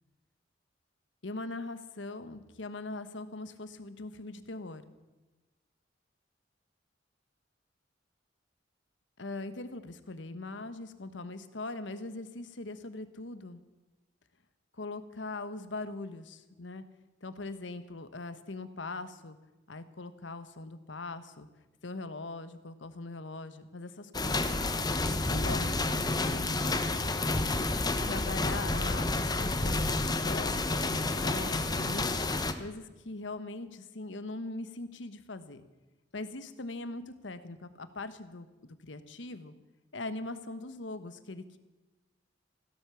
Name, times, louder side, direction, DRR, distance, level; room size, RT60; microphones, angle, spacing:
voice 1, 1.2-4.8 9.2-13.6 14.7-16.8 17.2-19.4 19.7-21.5 21.8-24.5 25.3-26.8 28.0-35.6 36.1-39.5 39.9-41.6, left 2 dB, 80° left, 11 dB, 1.2 m, -41 dB
sound 1, 24.1-32.5, left 2 dB, 20° left, 1.0 m, -30 dB
16.0 x 12.5 x 7.0 m, 1.1 s
head